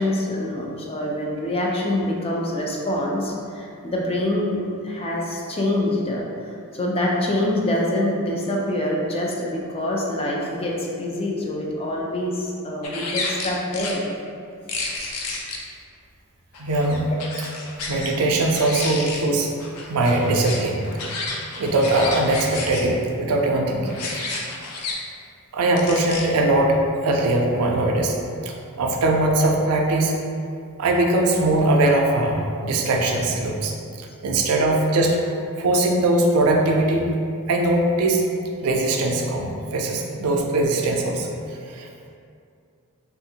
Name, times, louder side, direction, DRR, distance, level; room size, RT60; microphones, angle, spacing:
voice 1, 0.0-14.0, left 1 dB, 25° left, -2 dB, 0.4 m, -25 dB
sound 1, 12.8-14.0 14.7-15.6 16.5-18.1 18.4-19.2 19.6-22.8 23.8-24.9 25.8-26.2, left 3 dB, 85° left, 0.5 m, -31 dB
voice 2, 16.6-17.1 17.9-19.5 19.9-20.9 21.6-24.0 25.5-28.2 28.4-30.1 30.8-37.1 37.5-38.2 38.6-41.4 41.7-41.9, right 2 dB, 75° right, 1 dB, 0.4 m, -21 dB
3.3 x 2.4 x 2.7 m, 2.4 s
head